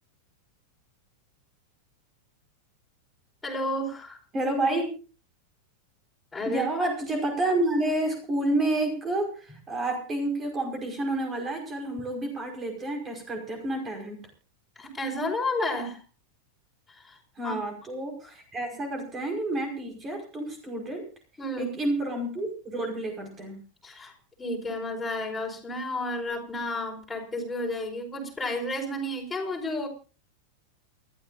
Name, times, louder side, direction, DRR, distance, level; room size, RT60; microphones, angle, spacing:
voice 1, 3.4-4.2 6.3-6.7 14.7-16.0 16.9-17.2 17.4-17.5 21.4-21.7 23.8-29.9, left 1 dB, 10° left, -1 dB, 5.0 m, -32 dB
voice 2, 4.3-5.0 6.5-14.2 17.4-21.1 21.6-23.6, right 1 dB, 20° right, 3 dB, 5.3 m, -29 dB
28.5 x 13.0 x 2.6 m, 0.34 s
figure-of-eight pair, 90°, 0 cm